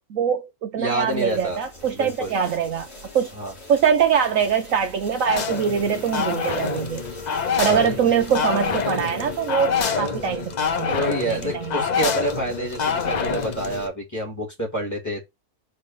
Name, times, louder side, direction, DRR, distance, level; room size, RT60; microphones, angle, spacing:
voice 1, 0.0-2.9 3.1-3.3 3.7-7.0 7.6-11.8, right 7 dB, 65° right, 1.0 m, -23 dB
voice 2, 0.8-1.6 1.9-2.3 3.3-3.5 7.6-8.0 10.8-15.2, right 1 dB, 10° left, 2.3 m, -28 dB
sound 1, 1.0-13.9, left 1 dB, 40° left, 3.3 m, -43 dB
sound 2, 5.2-13.9, left 6 dB, 60° left, 0.4 m, -26 dB
5.4 x 3.4 x 5.3 m
omnidirectional pair, 1.6 m